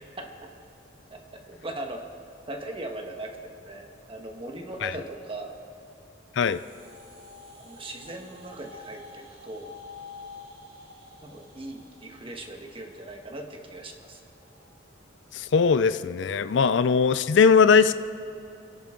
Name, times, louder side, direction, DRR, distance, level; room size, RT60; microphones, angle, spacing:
voice 1, 0.2-0.5 1.1-2.1 2.5-5.5 7.6-9.7 11.2-14.2, right 1 dB, 30° right, 3 dB, 1.5 m, -39 dB
sound 1, 6.4-14.7, left 3 dB, 70° right, 4.3 m, -48 dB
voice 2, 15.3-17.9, left 5 dB, 65° left, 13 dB, 0.4 m, -20 dB
27.5 x 11.0 x 3.8 m, 2.8 s
head